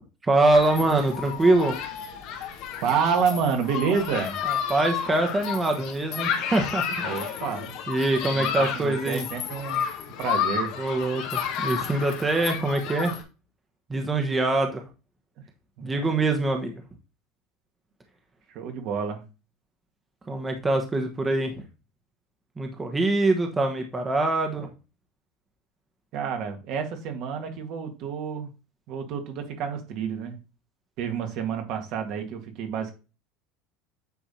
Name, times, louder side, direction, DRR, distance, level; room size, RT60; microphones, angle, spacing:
voice 1, 0.2-1.8 4.4-7.3 7.9-9.3 10.8-13.1 13.9-14.8 15.8-16.8 20.3-21.6 22.6-24.7, right 2 dB, 20° right, 4 dB, 1.2 m, -24 dB
Human group actions, 0.5-13.2, left 8 dB, 65° left, 1.4 m, -31 dB
voice 2, 2.8-4.4 7.0-7.7 8.3-9.9 10.2-10.7 15.8-16.1 18.5-19.2 26.1-28.5 28.9-30.4 31.0-32.9, right 6 dB, 60° right, 4 dB, 1.8 m, -29 dB
9.2 x 3.5 x 4.3 m, 0.32 s
supercardioid pair, 110°, 0 cm